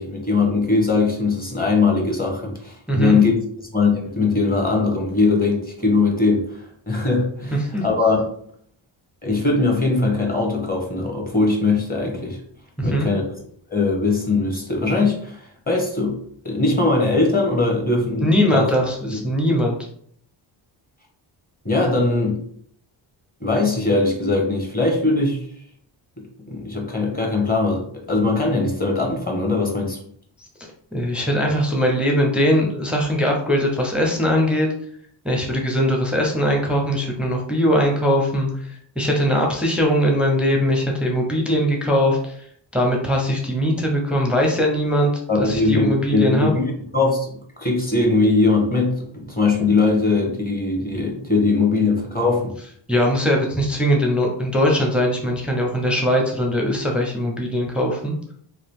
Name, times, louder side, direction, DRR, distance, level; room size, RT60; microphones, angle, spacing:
voice 1, 0.0-3.3 3.7-8.2 9.2-12.4 12.8-13.4 13.7-15.4 15.7-16.2 16.4-19.2 21.6-22.4 23.4-25.4 26.5-30.0 45.3-52.5, left 3 dB, 20° left, -1 dB, 1.1 m, -20 dB
voice 2, 2.9-3.2 7.5-7.8 12.8-13.1 18.2-19.8 30.9-34.7 35.2-38.5 39.0-42.3 42.7-45.1 45.4-46.5 52.9-58.1, equal, ahead, 0 dB, 0.6 m, -20 dB
2.9 x 2.4 x 3.4 m, 0.63 s
cardioid pair, 80°, 46 cm